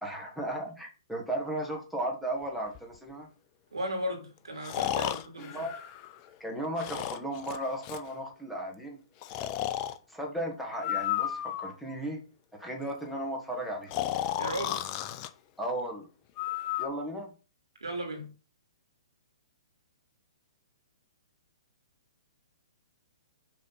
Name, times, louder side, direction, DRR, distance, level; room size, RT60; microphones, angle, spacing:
voice 1, 0.0-3.3 5.0-5.1 5.4-5.7 6.4-9.0 10.1-12.2 12.6-13.9 15.6-16.1 16.8-17.3, right 1 dB, ahead, 1.8 m, -35 dB
Breathing, 2.7-2.8 4.6-6.3 6.8-8.1 9.2-10.0 10.8-11.9 13.9-15.3 16.4-16.9, left 12 dB, 35° left, 0.6 m, -33 dB
voice 2, 3.7-5.7 14.4-14.8 17.8-18.3, equal, 85° right, 2.6 m, -36 dB
6.5 x 3.6 x 5.8 m
hypercardioid pair, 125°, 3 cm